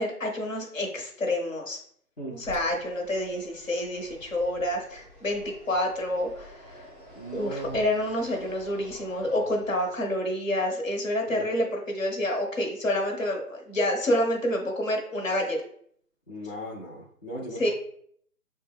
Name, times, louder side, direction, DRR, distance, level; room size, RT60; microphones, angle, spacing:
voice 1, 0.0-1.8 2.3-6.9 7.3-15.6 17.6-17.7, left 1 dB, 55° left, 1 dB, 1.2 m, -28 dB
Fixed-wing aircraft airplane, 2.4-10.2, left 1 dB, 10° right, 1.0 m, -49 dB
voice 2, 7.1-7.8 11.3-11.4 16.3-17.7, equal, 40° left, -7 dB, 0.8 m, -37 dB
6.3 x 2.2 x 3.5 m, 0.63 s
figure-of-eight pair, 165°, 47 cm